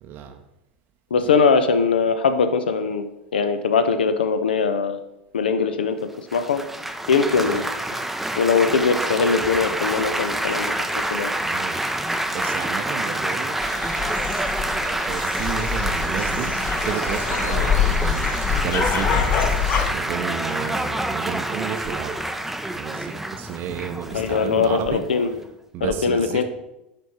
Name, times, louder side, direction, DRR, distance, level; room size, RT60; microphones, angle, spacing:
voice 1, 0.0-0.4 1.3-1.4 7.3-7.6 11.4-11.8 12.3-13.6 13.9-14.1 14.8-19.4 19.9-22.2 22.8-25.0 25.7-26.4, right 9 dB, 45° right, 6 dB, 0.6 m, -32 dB
voice 2, 1.1-3.1 3.3-5.0 5.3-6.6 7.1-7.6 8.4-10.7 11.1-11.3 24.1-25.4 25.8-26.4, left 5 dB, 75° left, 10 dB, 0.6 m, -21 dB
Laughter / Applause / Chatter, 6.3-25.4, right 1 dB, 5° right, 0.5 m, -27 dB
sound 1, 13.6-19.9, left 7 dB, 40° left, 0.8 m, -25 dB
10.5 x 3.5 x 4.2 m, 0.89 s
figure-of-eight pair, 85°, 5 cm